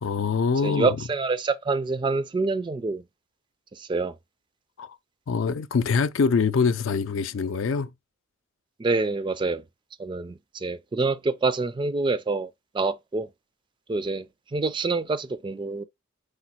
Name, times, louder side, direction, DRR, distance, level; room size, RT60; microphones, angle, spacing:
voice 1, 0.0-1.0 4.8-5.0 5.3-7.9, left 5 dB, 70° left, 0.4 m, -24 dB
voice 2, 0.6-3.0 3.7-4.1 8.8-9.6 10.0-12.5 12.7-13.3 13.9-14.3 14.5-15.8, right 3 dB, 25° right, 0.3 m, -26 dB
5.0 x 2.2 x 4.2 m
head